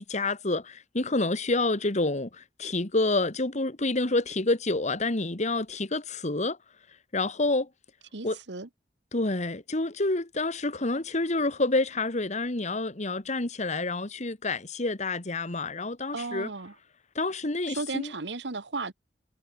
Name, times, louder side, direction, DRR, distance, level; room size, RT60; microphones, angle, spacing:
voice 1, 0.0-6.6 7.1-7.7 8.2-8.4 9.1-16.5 17.2-18.1, left 2 dB, 40° left, 1.8 m, -28 dB
voice 2, 8.1-8.7 16.1-16.7 17.7-18.9, right 3 dB, 85° right, 1.5 m, -35 dB
head